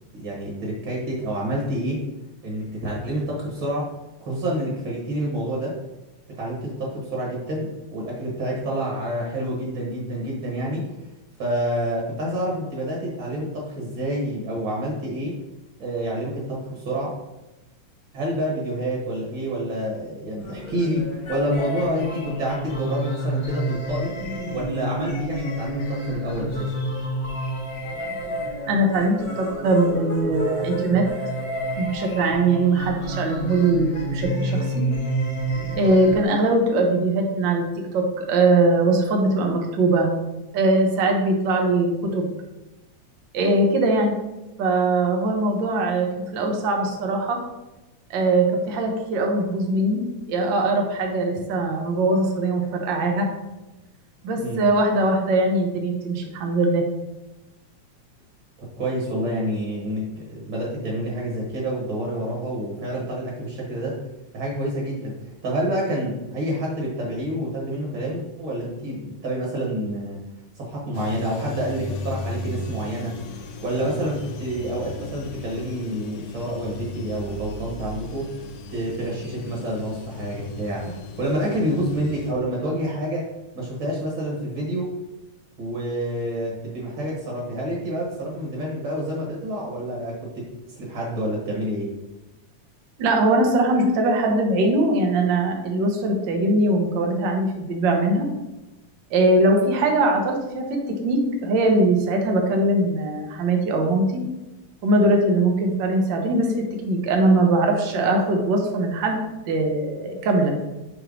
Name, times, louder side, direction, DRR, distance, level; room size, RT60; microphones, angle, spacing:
voice 1, 0.1-2.0 2.4-3.9 4.2-5.7 6.4-10.9 11.4-15.3 15.8-17.1 18.1-24.1 24.5-26.7 54.4-54.6 58.6-63.9 64.3-65.1 65.4-70.2 70.5-73.2 73.6-78.3 78.7-83.2 83.5-84.9 85.6-90.5 90.8-91.9, right 1 dB, 50° right, -3 dB, 1.6 m, -28 dB
sound 1, 20.4-36.2, right 1 dB, 55° left, 1.0 m, -29 dB
voice 2, 28.7-31.1 31.7-34.9 35.7-40.1 40.5-42.3 43.3-44.2 44.6-47.4 48.1-50.0 50.3-53.3 54.2-56.9 93.0-98.3 99.1-104.2 104.8-110.5, right 2 dB, 80° right, 2 dB, 1.0 m, -21 dB
sound 2, 70.9-82.3, left 2 dB, 80° left, 2.1 m, -36 dB
6.3 x 3.0 x 5.1 m, 1.0 s
omnidirectional pair, 3.4 m